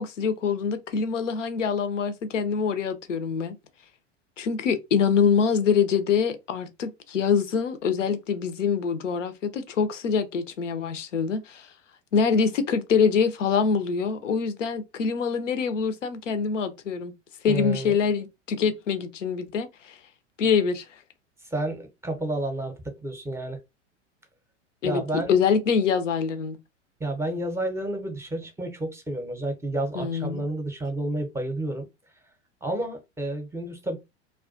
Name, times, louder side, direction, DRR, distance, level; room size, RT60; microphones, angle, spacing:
voice 1, 0.0-3.5 4.4-11.7 12.1-17.1 17.4-19.9 20.4-20.8 24.8-26.6 29.9-30.4, left 6 dB, 85° left, 0.5 m, -25 dB
voice 2, 17.5-18.0 21.4-23.6 24.8-25.3 27.0-31.9 32.6-34.0, right 1 dB, 5° right, 0.6 m, -30 dB
2.3 x 2.2 x 2.4 m
hypercardioid pair, 90°, 36 cm